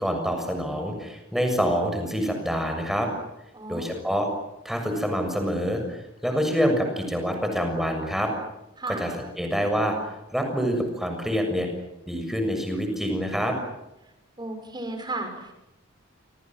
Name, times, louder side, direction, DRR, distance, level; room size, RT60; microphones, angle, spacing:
voice 1, 0.0-3.1 3.7-4.3 4.6-8.3 8.9-10.0 10.3-11.7 12.1-13.5, equal, ahead, 4 dB, 6.8 m, -26 dB
voice 2, 3.5-3.9 8.8-9.0 14.4-15.5, right 2 dB, 20° right, 5 dB, 6.4 m, -34 dB
29.0 x 26.5 x 7.7 m, 0.93 s
head